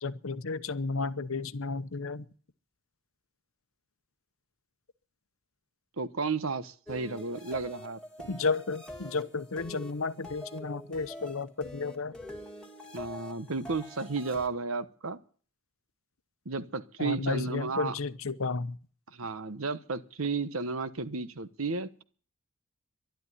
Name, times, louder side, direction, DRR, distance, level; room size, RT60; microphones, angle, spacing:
voice 1, 0.0-2.3 8.3-12.1 17.0-18.8, left 4 dB, 70° left, 0.9 m, -32 dB
voice 2, 6.0-8.0 12.9-15.2 16.4-17.9 19.1-22.0, right 4 dB, 75° right, 1.1 m, -33 dB
sound 1, 6.9-14.5, left 1 dB, 5° left, 2.2 m, -45 dB
12.0 x 11.5 x 9.8 m
head